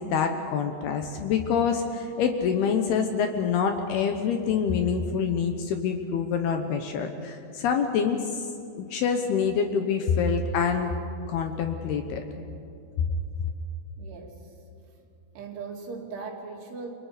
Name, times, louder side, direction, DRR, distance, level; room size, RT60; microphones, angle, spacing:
voice 1, 0.0-8.4 8.8-11.0 11.3-12.2, left 6 dB, 70° left, 5 dB, 2.6 m, -26 dB
voice 2, 14.0-14.5 15.3-16.9, right 4 dB, 75° right, 0 dB, 5.0 m, -39 dB
29.5 x 25.0 x 5.1 m, 2.7 s
omnidirectional pair, 5.5 m